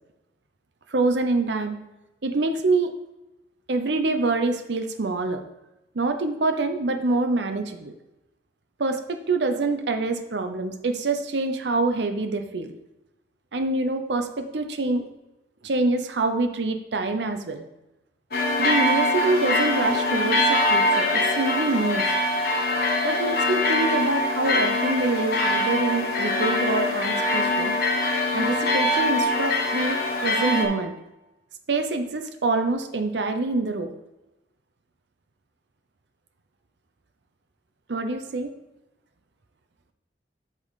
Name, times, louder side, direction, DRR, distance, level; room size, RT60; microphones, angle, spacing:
voice 1, 0.9-1.8 2.2-2.9 3.7-5.4 5.9-7.9 8.8-12.7 13.5-15.1 15.6-17.6 18.6-22.1 23.0-27.8 28.3-30.9 31.7-33.9 37.9-38.5, right 3 dB, 70° right, 7 dB, 0.7 m, -25 dB
sound 1, 18.3-30.6, left 1 dB, 55° left, 1.3 m, -23 dB
8.3 x 5.3 x 4.1 m, 0.98 s
head